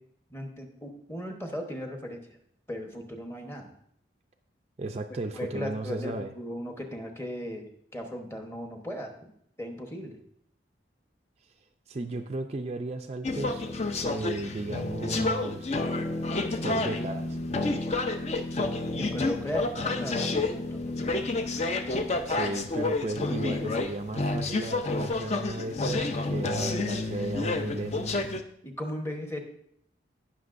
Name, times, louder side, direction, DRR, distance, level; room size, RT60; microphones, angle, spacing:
voice 1, 0.3-2.2 2.7-3.7 5.3-7.7 7.9-9.3 9.6-10.2 18.9-21.3 28.6-29.4, equal, 15° left, 3 dB, 1.0 m, -37 dB
voice 2, 4.8-6.3 11.9-13.6 14.0-15.7 16.6-17.4 22.3-28.1, right 2 dB, 35° right, 6 dB, 0.4 m, -35 dB
sound 1, 13.2-28.4, left 2 dB, 35° left, 0.5 m, -29 dB
17.5 x 6.0 x 2.5 m, 0.70 s
head